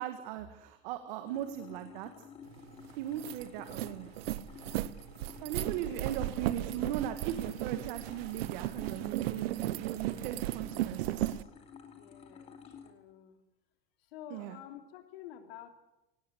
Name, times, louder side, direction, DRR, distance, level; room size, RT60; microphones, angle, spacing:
voice 1, 0.0-2.1 3.0-4.1 5.4-11.3 14.3-14.6, right 11 dB, 55° right, 9 dB, 1.9 m, -38 dB
sound 1, 1.2-12.9, left 6 dB, 20° left, 2.9 m, -53 dB
sound 2, 2.6-2.7 3.0-11.4, right 15 dB, 90° right, 1.1 m, -35 dB
voice 2, 5.6-6.0 11.9-13.4 14.1-15.7, left 11 dB, 80° left, 7 dB, 3.1 m, -50 dB
24.0 x 19.0 x 8.1 m, 0.94 s
supercardioid pair, 180°, 30 cm